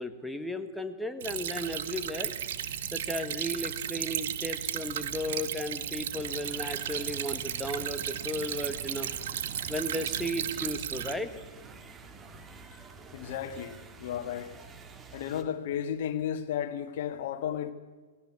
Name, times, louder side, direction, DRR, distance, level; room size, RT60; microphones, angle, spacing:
voice 1, 0.0-2.3 2.8-9.1 9.7-11.3, left 1 dB, ahead, 1.6 m, -35 dB
Stream / Trickle dribble, 1.2-11.1, right 10 dB, 60° right, 1.4 m, -35 dB
sound 1, 6.1-15.4, right 4 dB, 20° right, 2.3 m, -49 dB
voice 2, 13.1-14.6 15.1-17.7, left 9 dB, 55° left, 1.7 m, -33 dB
18.5 x 17.5 x 9.5 m
hypercardioid pair, 110°, 0 cm